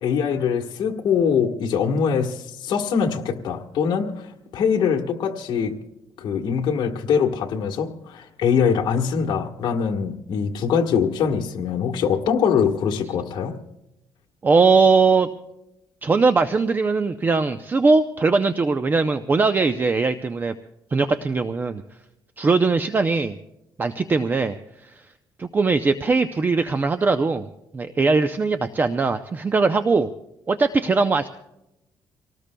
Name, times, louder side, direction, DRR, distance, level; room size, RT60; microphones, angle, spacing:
voice 1, 0.0-5.7 6.2-13.6, left 6 dB, 65° left, 1 dB, 1.4 m, -23 dB
voice 2, 14.4-15.3 16.0-20.5 20.9-21.8 22.4-23.4 23.8-24.5 24.8-24.9 25.4-27.5 27.7-30.1 30.5-31.3, right 4 dB, 25° right, 9 dB, 0.5 m, -20 dB
27.0 x 18.5 x 2.2 m, 0.89 s
cardioid pair, 130°, 8 cm